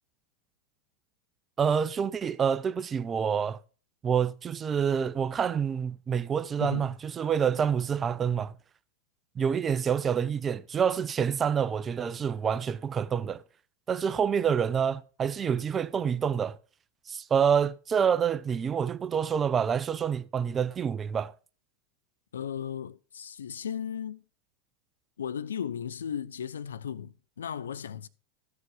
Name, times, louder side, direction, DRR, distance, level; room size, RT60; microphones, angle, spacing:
voice 1, 1.6-3.6 4.0-8.6 9.4-13.4 13.9-16.6 17.1-21.3, right 7 dB, 25° right, 0.5 m, -27 dB
voice 2, 6.6-6.9 22.3-24.2 25.2-28.1, left 8 dB, 85° left, 0.4 m, -36 dB
14.0 x 4.9 x 4.7 m
hypercardioid pair, 100°, 0 cm